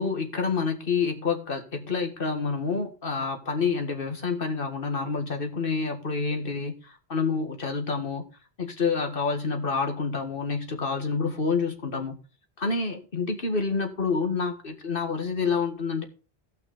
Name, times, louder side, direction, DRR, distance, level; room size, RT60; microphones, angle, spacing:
voice 1, 0.0-8.3 8.6-12.2 12.6-16.0, left 4 dB, 60° left, 1.9 m, -28 dB
15.0 x 6.0 x 3.8 m
omnidirectional pair, 1.0 m